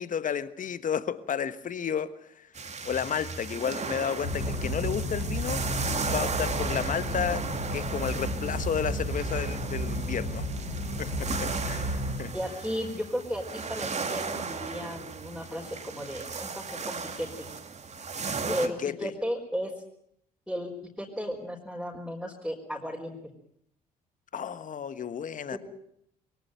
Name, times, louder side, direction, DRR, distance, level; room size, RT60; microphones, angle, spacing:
voice 1, 0.0-2.5 2.8-5.7 6.0-10.5 11.0-12.3 18.4-19.1 24.3-25.6, left 8 dB, 45° left, 14 dB, 1.4 m, -32 dB
sound 1, 2.6-18.7, right 5 dB, 35° right, 2.4 m, -36 dB
sound 2, 4.2-12.2, equal, 85° left, 5.0 m, -32 dB
voice 2, 12.3-17.5 18.5-19.7 20.5-20.7 21.0-23.2 25.5-25.6, equal, ahead, -3 dB, 4.5 m, -34 dB
22.5 x 17.5 x 9.1 m, 0.72 s
hypercardioid pair, 50°, 19 cm